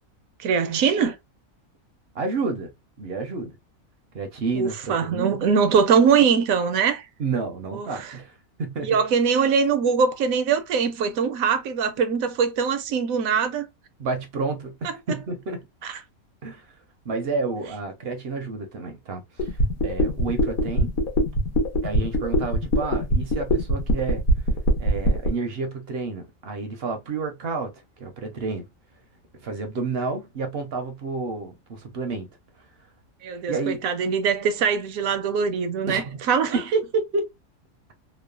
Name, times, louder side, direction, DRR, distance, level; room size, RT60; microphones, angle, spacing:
voice 1, 0.4-1.2 4.5-7.1 7.7-8.1 8.8-13.7 15.8-15.9 33.2-36.0 36.3-36.6, right 6 dB, 75° right, 1.0 m, -22 dB
voice 2, 2.1-2.7 3.0-3.6 4.1-5.4 7.2-9.0 14.0-15.7 16.4-16.8 17.0-20.9 21.8-24.2 24.8-27.7 28.0-28.7 29.4-32.3 33.5-33.9 35.9-36.2 36.5-37.3, right 4 dB, 55° right, 0.7 m, -30 dB
sound 1, 19.4-25.3, equal, 85° left, 1.3 m, -21 dB
3.1 x 2.1 x 2.3 m
omnidirectional pair, 1.5 m